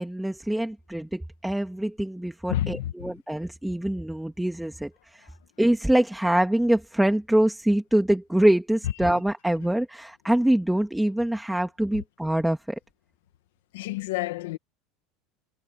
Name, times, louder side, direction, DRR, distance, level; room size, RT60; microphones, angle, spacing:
voice 1, 0.0-5.3 5.6-12.8, right 1 dB, 5° right, 2.2 m, -24 dB
voice 2, 2.5-2.9 13.7-14.6, left 14 dB, 90° left, 1.6 m, -29 dB
supercardioid pair, 125°, 0 cm